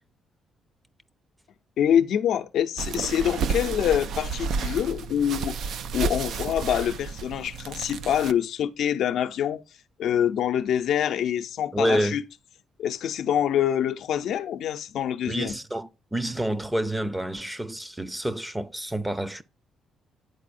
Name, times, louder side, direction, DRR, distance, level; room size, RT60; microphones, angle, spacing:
voice 1, 1.8-9.6 10.0-12.2 12.8-15.5, left 10 dB, 75° left, 0.6 m, -25 dB
sound 1, 2.8-8.3, right 5 dB, 70° right, 0.4 m, -31 dB
voice 2, 11.7-12.2 15.3-19.4, right 1 dB, 10° right, 0.6 m, -28 dB
10.5 x 4.1 x 2.5 m
cardioid pair, 90°, 0 cm